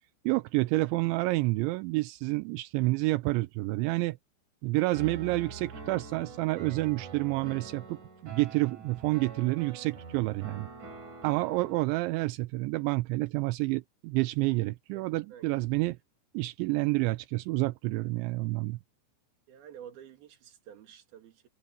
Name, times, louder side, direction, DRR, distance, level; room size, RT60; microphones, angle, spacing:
voice 1, 0.3-4.2 4.6-10.7 11.2-16.0 16.3-18.8, right 21 dB, 85° right, 3.0 m, -29 dB
Piano, 4.9-11.8, right 4 dB, 45° right, 5.1 m, -45 dB
voice 2, 14.9-15.6 19.5-21.5, right 9 dB, 60° right, 3.9 m, -50 dB
omnidirectional pair, 5.3 m